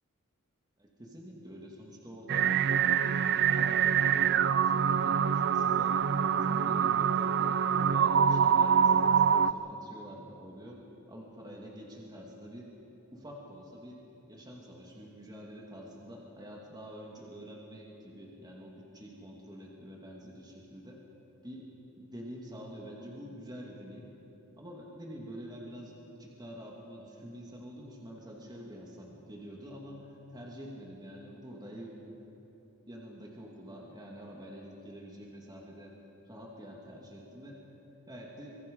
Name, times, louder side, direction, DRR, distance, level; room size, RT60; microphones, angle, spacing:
voice 1, 0.8-6.0 6.4-10.8 11.1-12.7 13.1-14.0 14.3-21.0 21.4-24.1 24.6-32.2 32.9-35.9 36.3-37.6 38.1-38.6, equal, 20° right, -2 dB, 2.6 m, -47 dB
sound 1, 2.3-9.5, right 7 dB, 50° right, 0.5 m, -25 dB
25.5 x 22.5 x 5.6 m, 3.0 s
head